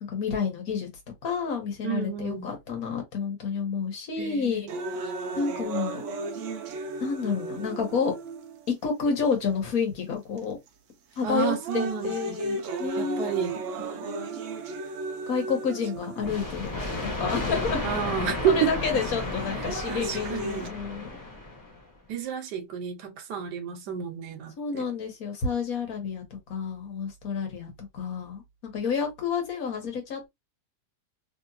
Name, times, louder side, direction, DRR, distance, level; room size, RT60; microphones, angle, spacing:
voice 1, 0.1-0.9 1.2-5.0 5.4-6.0 7.0-8.1 8.7-10.6 11.2-13.4 13.8-14.1 15.3-16.7 17.0-17.8 18.5-21.1 24.6-30.3, left 5 dB, 60° left, 1.5 m, -30 dB
voice 2, 1.8-2.5 4.2-4.7 11.2-12.4 13.0-13.6 17.8-18.7 19.9-20.7 22.1-24.8, right 9 dB, 85° right, 1.3 m, -30 dB
sound 1, 4.7-8.7 9.4-9.5 10.4-10.7 11.2-16.7 17.7-17.8 19.2-20.7, right 2 dB, 65° right, 0.7 m, -35 dB
sound 2, 16.2-21.8, left 2 dB, 15° left, 0.8 m, -33 dB
3.1 x 2.9 x 2.6 m
omnidirectional pair, 1.8 m